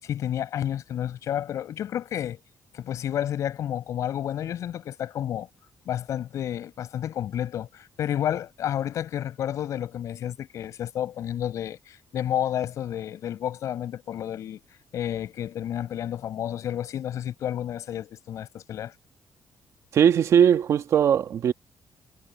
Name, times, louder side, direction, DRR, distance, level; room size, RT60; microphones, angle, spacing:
voice 1, 0.0-2.4 2.7-5.5 5.9-14.6 14.9-18.9, left 10 dB, 75° left, 6.1 m, -30 dB
voice 2, 19.9-21.5, right 8 dB, 65° right, 1.4 m, -19 dB
cardioid pair, 110°, 5 cm